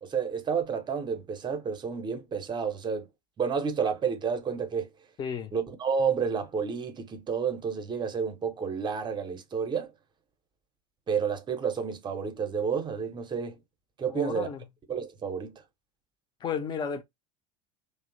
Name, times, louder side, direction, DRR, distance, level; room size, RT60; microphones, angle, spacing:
voice 1, 0.0-3.1 3.4-4.9 5.5-9.9 11.1-13.6 14.0-14.5 14.9-15.5, right 6 dB, 25° right, 0.7 m, -30 dB
voice 2, 5.2-5.5 14.0-14.6 16.4-17.0, left 6 dB, 25° left, 0.5 m, -33 dB
2.8 x 2.0 x 2.5 m
figure-of-eight pair, 75°, 19 cm